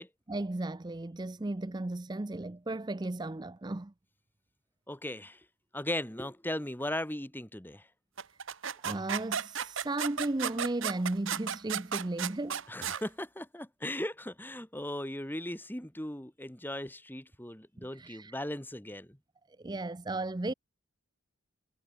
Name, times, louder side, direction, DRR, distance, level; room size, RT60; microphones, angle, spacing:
voice 1, 0.3-3.9 8.3-8.4 8.8-12.6 17.8-18.4 19.6-20.5, right 2 dB, 20° right, 0.5 m, -35 dB
voice 2, 4.9-5.5 5.7-7.9 12.7-19.2, left 1 dB, 10° left, 1.7 m, -38 dB
sound 1, 8.2-13.0, right 8 dB, 60° right, 1.1 m, -34 dB
head